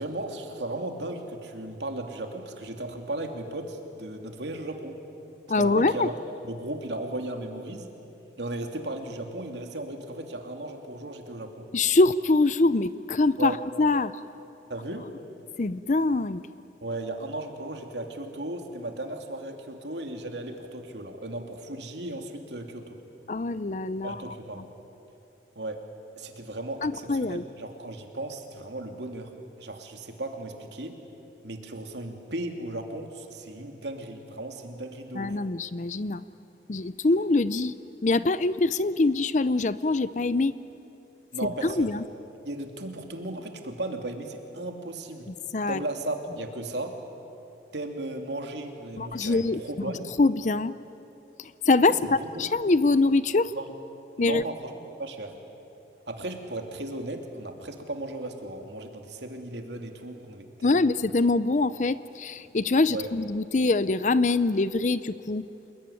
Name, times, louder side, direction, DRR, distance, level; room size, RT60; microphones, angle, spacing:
voice 1, 0.0-5.0 5.5-6.1 6.4-7.9 8.4-11.7 13.4-13.6 14.7-15.1 16.8-23.0 24.0-24.7 25.5-25.8 26.2-29.3 29.6-31.0 31.4-35.4 41.3-41.9 42.4-45.3 45.7-47.0 47.7-50.1 51.9-52.4 53.5-53.7 54.2-54.7 55.0-55.4 56.1-61.1 62.9-63.1, right 1 dB, 75° right, 4 dB, 2.9 m, -36 dB
voice 2, 5.5-6.1 11.7-14.1 15.6-16.4 23.3-24.3 26.8-27.4 35.1-36.2 36.7-37.7 38.0-40.5 41.6-42.0 45.3-45.8 49.0-49.9 50.2-50.7 51.4-53.5 54.2-54.4 60.6-65.5, left 3 dB, 40° left, 15 dB, 0.5 m, -24 dB
27.5 x 21.5 x 10.0 m, 2.9 s
head